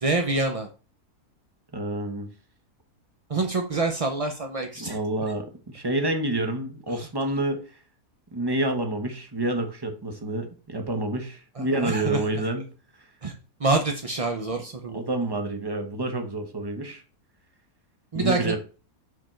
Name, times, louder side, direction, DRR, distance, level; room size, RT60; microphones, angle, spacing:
voice 1, 0.0-0.7 3.3-5.0 6.9-7.1 11.6-12.2 13.2-13.3 13.6-15.0 18.1-18.6, right 3 dB, 40° right, 4 dB, 0.4 m, -26 dB
voice 2, 1.7-2.3 4.8-7.7 8.3-12.7 14.9-17.0 18.1-18.6, right 1 dB, 20° right, 5 dB, 0.9 m, -28 dB
5.9 x 5.2 x 4.4 m, 0.36 s
omnidirectional pair, 1.7 m